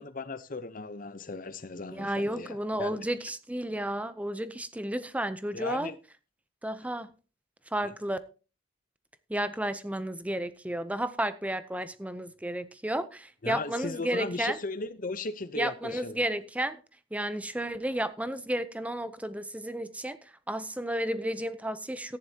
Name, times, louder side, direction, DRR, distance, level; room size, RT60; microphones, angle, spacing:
voice 1, 0.0-3.1 5.5-6.0 7.8-7.9 13.4-16.2, left 3 dB, 45° left, 0.8 m, -37 dB
voice 2, 1.9-5.9 6.6-7.1 7.7-8.2 9.3-14.6 15.5-16.8 17.1-22.2, right 1 dB, 5° right, 0.6 m, -32 dB
14.0 x 10.5 x 2.9 m
head